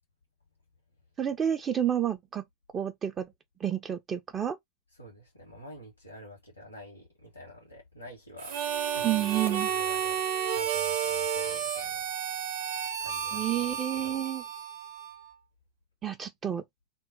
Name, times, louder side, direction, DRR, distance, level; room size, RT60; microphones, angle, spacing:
voice 1, 1.2-2.4 2.7-3.3 3.6-4.6 9.0-9.7 13.3-14.4 16.0-16.6, right 10 dB, 25° right, 0.3 m, -30 dB
voice 2, 4.9-12.1 13.0-14.2, equal, 85° left, 0.9 m, -48 dB
Harmonica, 8.4-15.3, right 8 dB, 55° right, 0.7 m, -32 dB
2.2 x 2.0 x 3.7 m
figure-of-eight pair, 90°, 0 cm